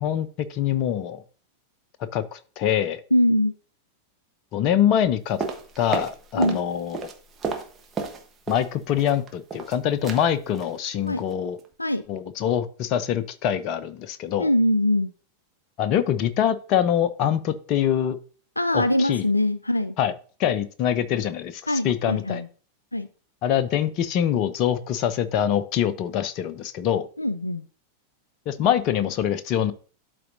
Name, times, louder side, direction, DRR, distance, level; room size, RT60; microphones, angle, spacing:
voice 1, 0.0-1.2 2.1-3.0 4.5-5.4 5.8-7.0 8.5-11.6 12.1-14.5 15.8-18.2 18.7-19.2 20.0-20.1 20.4-22.4 23.4-27.1 28.5-29.7, left 10 dB, 40° left, 12 dB, 0.6 m, -24 dB
voice 2, 3.1-3.5 6.4-6.6 11.1-11.2 11.8-12.0 14.4-15.1 18.6-20.0 21.7-22.5 22.9-23.1 27.2-27.7, left 1 dB, 85° left, 13 dB, 0.4 m, -22 dB
sound 1, 5.4-6.6 6.9-8.7 9.0-9.7 10.0-10.3 10.5-10.8 11.1-11.3 11.6-11.7, right 4 dB, 20° right, 1.1 m, -32 dB
12.0 x 4.0 x 2.6 m, 0.39 s
figure-of-eight pair, 90°, 0 cm